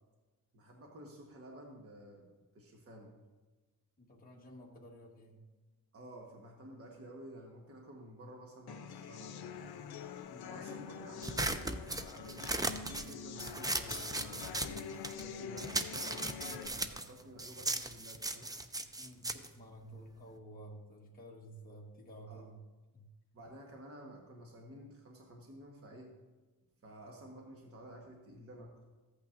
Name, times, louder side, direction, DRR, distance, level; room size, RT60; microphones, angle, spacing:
voice 1, 0.5-2.3 2.5-3.2 5.9-9.9 10.4-11.6 12.1-14.7 15.2-18.5 22.3-22.4 23.3-26.1 26.8-28.7, right 1 dB, 40° right, 0 dB, 1.2 m, -52 dB
voice 2, 4.0-5.4 10.3-10.7 19.0-22.6 22.9-23.1, right 1 dB, 25° left, -3 dB, 1.4 m, -52 dB
sound 1, 8.7-16.7, left 7 dB, 85° left, 0.6 m, -46 dB
sound 2, 11.2-15.3 15.6-20.4, right 2 dB, 10° right, 0.3 m, -37 dB
14.5 x 8.6 x 2.5 m, 1.2 s
wide cardioid pair, 155°, 37 cm